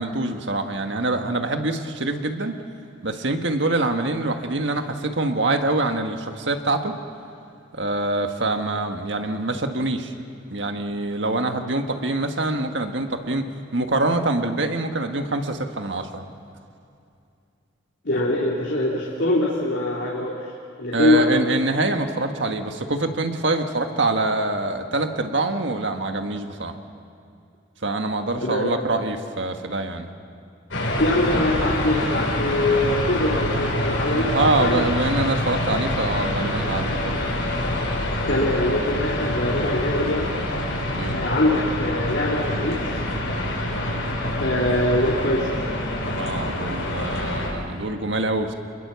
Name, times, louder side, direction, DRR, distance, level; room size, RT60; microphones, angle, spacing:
voice 1, 0.0-2.6 3.0-7.0 7.7-10.1 10.5-13.4 13.7-16.2 20.9-26.7 27.8-30.1 34.1-37.4 41.0-41.2 46.1-48.5, right 2 dB, 65° right, 5 dB, 1.6 m, -25 dB
voice 2, 18.0-20.5 20.8-21.4 28.4-28.8 31.0-34.8 38.2-40.3 41.1-42.8 44.4-45.6, left 1 dB, 65° left, -5 dB, 3.0 m, -23 dB
sound 1, 30.7-47.5, left 1 dB, 85° left, 6.0 m, -26 dB
27.5 x 21.5 x 7.1 m, 2.5 s
head